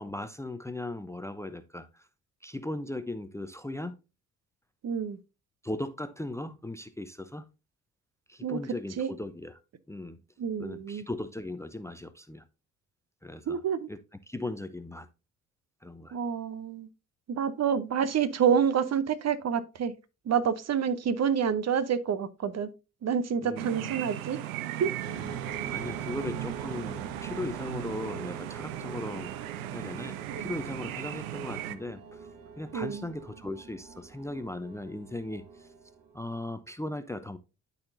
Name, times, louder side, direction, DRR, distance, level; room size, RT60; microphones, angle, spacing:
voice 1, 0.0-2.1 2.4-3.9 5.6-7.5 8.3-9.6 9.9-10.2 10.6-12.4 13.2-13.6 13.9-14.0 14.3-15.1 15.8-16.2 23.4-23.7 25.2-29.4 29.7-32.3 32.6-35.7 36.1-37.4, left 2 dB, 5° left, 0.6 m, -38 dB
voice 2, 4.8-5.2 8.4-8.6 9.0-9.1 10.4-11.0 13.5-13.9 16.1-16.9 17.3-19.9 20.3-22.7 23.0-24.4 24.7-24.9 30.3-30.5 32.7-33.0, right 7 dB, 40° right, 0.9 m, -28 dB
sound 1, 23.6-31.8, right 13 dB, 80° right, 0.6 m, -37 dB
sound 2, 25.0-36.3, right 5 dB, 55° right, 1.5 m, -45 dB
12.5 x 4.2 x 2.6 m
figure-of-eight pair, 50°, 42 cm